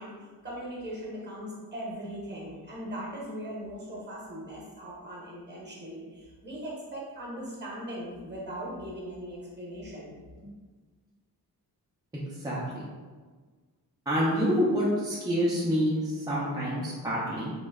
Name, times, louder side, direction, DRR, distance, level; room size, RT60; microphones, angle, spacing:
voice 1, 0.0-10.1, equal, 25° right, -4 dB, 0.8 m, -39 dB
voice 2, 12.4-12.8 14.1-17.5, equal, 10° right, -8 dB, 0.4 m, -27 dB
3.0 x 2.1 x 3.4 m, 1.4 s
wide cardioid pair, 165°, 38 cm